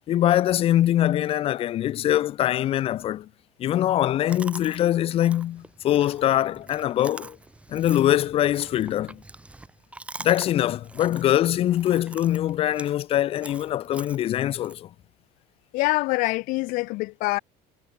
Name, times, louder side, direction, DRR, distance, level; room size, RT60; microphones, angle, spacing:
voice 1, 0.1-3.3 3.6-7.4 7.7-9.2 10.2-14.9, left 12 dB, 40° left, 1.2 m, -23 dB
Chewing mastication, 4.3-14.7, right 2 dB, 10° right, 6.6 m, -45 dB
voice 2, 15.7-17.4, left 22 dB, 65° left, 4.7 m, -25 dB
cardioid pair, 160°, 15 cm